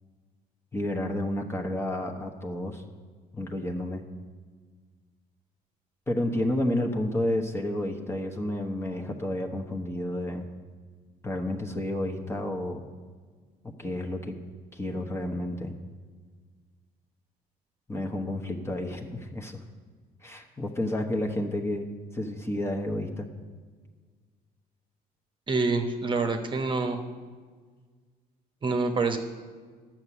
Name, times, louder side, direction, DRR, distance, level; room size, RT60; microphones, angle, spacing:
voice 1, 0.7-2.8 3.3-4.0 6.1-10.5 11.2-12.8 13.8-14.3 14.7-15.7 17.9-19.6 20.2-21.9 22.1-23.3, left 1 dB, 15° left, 2 dB, 1.1 m, -30 dB
voice 2, 25.5-27.0 28.6-29.2, right 3 dB, 30° right, 5 dB, 1.0 m, -26 dB
11.0 x 6.0 x 8.3 m, 1.5 s
cardioid pair, 110°, 17 cm